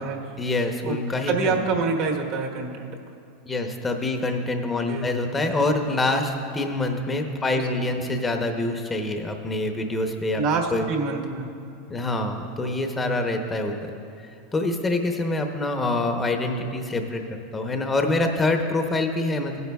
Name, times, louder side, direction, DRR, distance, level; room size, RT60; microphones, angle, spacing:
voice 1, 0.4-1.6 3.5-10.4 10.7-10.9 11.9-13.9 14.5-17.2 17.5-19.6, left 2 dB, 20° left, 5 dB, 0.8 m, -25 dB
voice 2, 1.3-2.9 4.9-5.3 7.3-8.0 10.3-11.5 13.0-13.2, right 4 dB, 55° right, 1 dB, 1.2 m, -27 dB
16.0 x 9.4 x 2.3 m, 2.5 s
hypercardioid pair, 105°, 0 cm